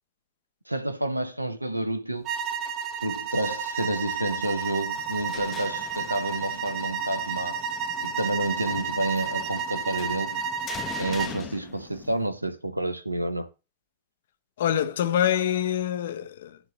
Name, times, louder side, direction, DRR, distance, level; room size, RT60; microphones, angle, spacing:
voice 1, 0.7-2.3 3.0-7.6 8.0-10.4 11.0-13.5, right 1 dB, 85° right, 0.9 m, -29 dB
sound 1, 2.2-11.4, right 6 dB, 35° right, 1.0 m, -31 dB
sound 2, 4.9-12.3, left 8 dB, 25° left, 0.6 m, -43 dB
voice 2, 14.6-16.6, left 10 dB, 60° left, 0.8 m, -25 dB
10.5 x 3.8 x 7.0 m
figure-of-eight pair, 90°, 0 cm